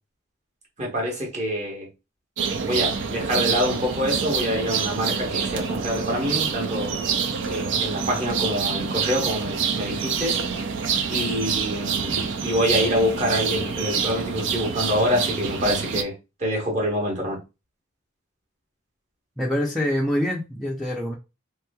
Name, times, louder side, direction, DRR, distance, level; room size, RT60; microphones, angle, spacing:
voice 1, 0.8-1.9 2.6-7.0 7.4-10.3 11.1-16.1 16.4-17.4, equal, 35° right, 1.2 m, -26 dB
sound 1, 2.4-16.0, right 6 dB, 60° right, 0.4 m, -26 dB
voice 2, 19.4-21.1, left 1 dB, ahead, 0.5 m, -25 dB
3.6 x 3.0 x 2.2 m
head